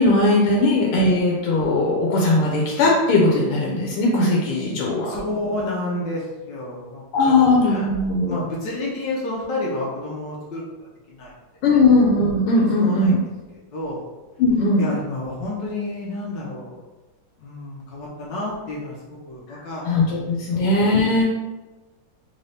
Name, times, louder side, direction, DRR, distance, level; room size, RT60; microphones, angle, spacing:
voice 1, 0.0-5.1 7.1-8.4 11.6-13.2 14.4-14.9 19.5-19.6 19.8-21.2, left 2 dB, 90° left, -2 dB, 1.6 m, -19 dB
voice 2, 5.0-7.9 8.3-11.3 11.7-11.8 12.8-13.2 13.5-14.0 14.8-16.8 17.4-20.6, left 1 dB, 70° left, -4 dB, 1.2 m, -30 dB
3.7 x 2.6 x 3.2 m, 1.2 s
omnidirectional pair, 2.3 m